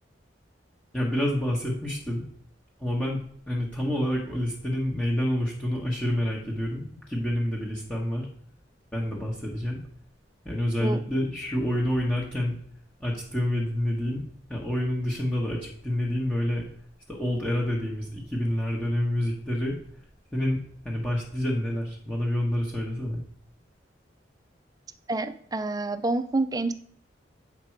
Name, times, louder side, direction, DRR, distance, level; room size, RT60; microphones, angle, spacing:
voice 1, 0.9-2.2 2.8-3.2 3.5-8.3 8.9-9.8 10.4-12.5 13.0-14.2 14.5-16.6 17.1-19.8 20.3-20.6 20.8-23.2, left 1 dB, 5° left, -4 dB, 1.1 m, -28 dB
voice 2, 25.1-26.7, right 2 dB, 20° right, 11 dB, 0.5 m, -28 dB
7.5 x 5.2 x 4.5 m, 0.62 s
head